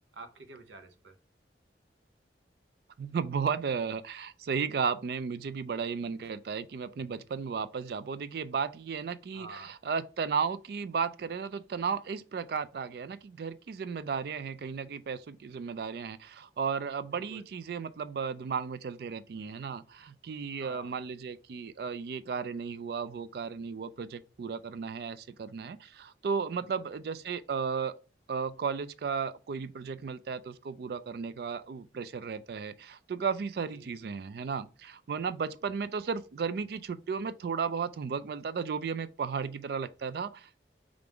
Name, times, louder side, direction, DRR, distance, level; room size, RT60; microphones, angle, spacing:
voice 1, 0.1-1.2 9.3-9.7 17.1-17.4 20.6-20.9 26.6-26.8 33.7-34.1, right 3 dB, 85° right, 0.7 m, -49 dB
voice 2, 3.0-27.9 28.3-40.6, right 6 dB, 60° right, 0.3 m, -34 dB
3.5 x 2.5 x 4.4 m
head